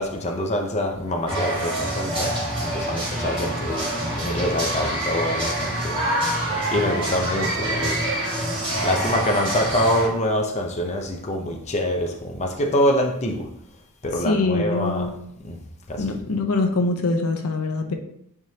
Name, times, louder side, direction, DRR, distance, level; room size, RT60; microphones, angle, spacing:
voice 1, 0.0-3.9 4.2-6.0 6.7-8.1 8.8-13.5 14.0-15.1 15.4-15.6 15.9-16.2, left 1 dB, 30° left, 2 dB, 0.7 m, -25 dB
sound 1, 1.3-10.1, right 1 dB, 25° right, 1.9 m, -26 dB
voice 2, 14.2-15.1 16.0-17.9, left 2 dB, 70° left, 4 dB, 0.7 m, -23 dB
9.1 x 3.6 x 2.8 m, 0.74 s
head